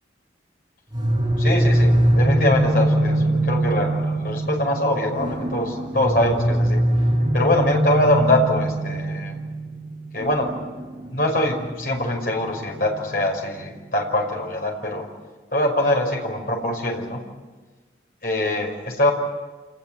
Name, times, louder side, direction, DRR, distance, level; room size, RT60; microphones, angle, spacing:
sound 1, 0.9-13.7, right 1 dB, 20° right, 5.3 m, -23 dB
voice 1, 1.4-6.8 7.3-9.1 10.1-10.5 11.1-15.1 15.5-17.2 18.2-19.1, left 1 dB, 50° left, 1 dB, 5.5 m, -23 dB
28.0 x 20.0 x 9.3 m, 1.3 s
head